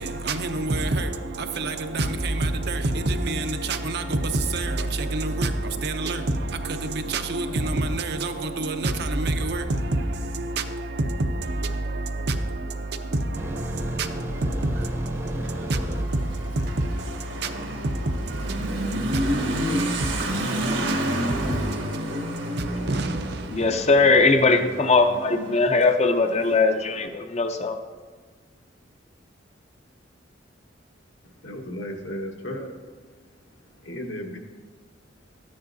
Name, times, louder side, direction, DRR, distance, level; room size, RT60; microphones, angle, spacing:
voice 1, 0.0-23.9, right 2 dB, 60° right, 0.6 m, -28 dB
sound 1, 13.3-19.6 19.8-20.1, equal, 15° right, 0.7 m, -34 dB
Motorcycle / Accelerating revving vroom, 14.6-26.9, right 1 dB, 75° right, 1.6 m, -30 dB
voice 2, 23.5-27.8, left 3 dB, 35° left, 0.6 m, -20 dB
voice 3, 31.2-32.9 33.2-34.4, equal, 70° left, 1.3 m, -36 dB
13.0 x 9.6 x 2.7 m
head